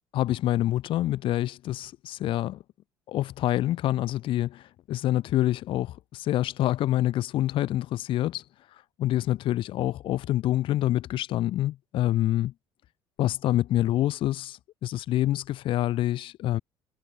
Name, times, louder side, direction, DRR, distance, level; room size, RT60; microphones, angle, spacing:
voice 1, 0.1-2.6 3.1-8.4 9.0-12.5 13.2-16.6, left 14 dB, 55° left, 0.4 m, -26 dB
supercardioid pair, 70°, 10 cm